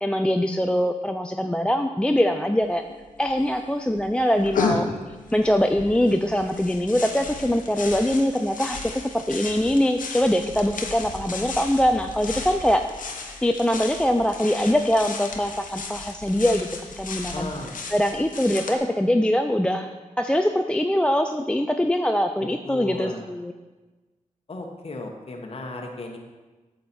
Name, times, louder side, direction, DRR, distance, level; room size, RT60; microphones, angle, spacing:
voice 1, 0.0-2.8 3.2-4.9 5.3-12.8 13.4-17.5 17.9-19.9 20.2-23.5, equal, 5° left, 6 dB, 0.4 m, -23 dB
sound 1, 2.6-2.7 2.9-3.6 3.9-18.7, left 4 dB, 90° left, 0.9 m, -34 dB
voice 2, 17.3-17.8 22.6-23.2 24.5-26.2, left 2 dB, 45° left, 1 dB, 1.0 m, -35 dB
8.7 x 6.4 x 4.2 m, 1.2 s
cardioid pair, 65°, 13 cm